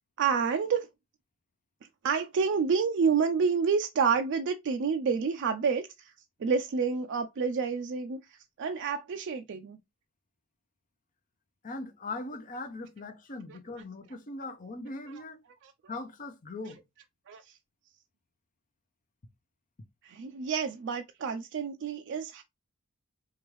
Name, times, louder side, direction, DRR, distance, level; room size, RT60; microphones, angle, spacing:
voice 1, 0.2-0.9 2.0-6.1 6.4-9.8 15.6-15.7 17.3-17.6 20.0-22.4, right 5 dB, 55° right, 0.3 m, -29 dB
voice 2, 11.6-15.4 15.9-16.8, left 2 dB, 35° left, 0.6 m, -40 dB
4.6 x 2.6 x 3.1 m
head